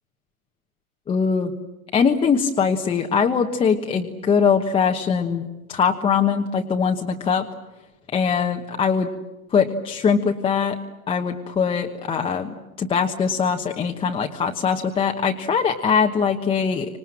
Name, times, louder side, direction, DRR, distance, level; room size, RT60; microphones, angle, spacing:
voice 1, 1.1-1.5 1.9-5.4 5.7-7.4 8.1-9.1 9.5-10.8 11.1-12.5 12.8-16.9, left 6 dB, 10° left, 3 dB, 1.2 m, -21 dB
30.0 x 26.0 x 7.5 m, 1.1 s
hypercardioid pair, 140°, 44 cm